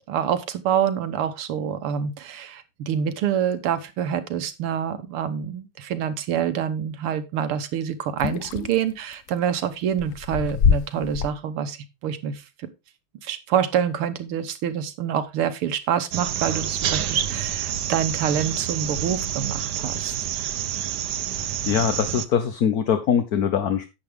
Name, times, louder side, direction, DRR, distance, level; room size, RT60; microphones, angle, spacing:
voice 1, 0.1-12.7 13.2-20.2, right 8 dB, 85° right, 11 dB, 2.0 m, -26 dB
sound 1, 8.2-9.3 9.9-11.3, left 7 dB, 80° left, 0.7 m, -24 dB
sound 2, 16.1-22.3, right 10 dB, 65° right, 1.2 m, -28 dB
voice 2, 21.3-23.9, left 8 dB, 55° left, 8 dB, 1.2 m, -23 dB
11.0 x 7.9 x 3.5 m, 0.25 s
omnidirectional pair, 2.4 m